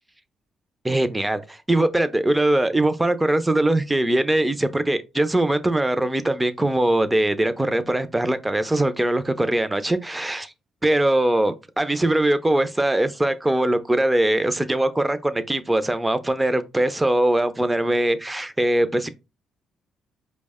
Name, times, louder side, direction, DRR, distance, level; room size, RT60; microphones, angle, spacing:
voice 1, 0.8-10.5 10.8-19.1, right 1 dB, 10° right, 0.5 m, -21 dB
4.7 x 2.1 x 3.5 m
cardioid pair, 90°, 0 cm